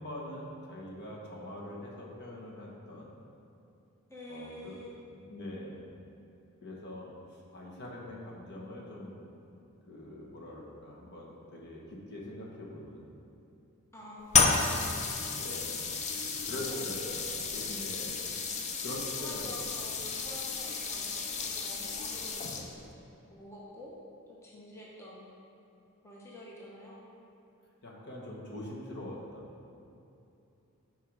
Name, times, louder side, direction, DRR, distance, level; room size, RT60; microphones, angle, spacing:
voice 1, 0.0-3.1 4.3-4.7 5.1-5.9 6.6-9.2 9.5-13.1 15.3-15.8 16.3-18.2 18.5-20.0 27.8-29.5, left 1 dB, 50° left, -3 dB, 1.4 m, -43 dB
voice 2, 4.1-5.0 13.9-15.0 16.7-17.3 19.2-22.7 23.3-23.9 24.3-25.3 26.0-27.1, left 1 dB, 10° left, -5 dB, 0.9 m, -48 dB
sound 1, 14.3-22.9, left 5 dB, 30° left, 0.6 m, -32 dB
10.0 x 4.6 x 4.8 m, 2.8 s
head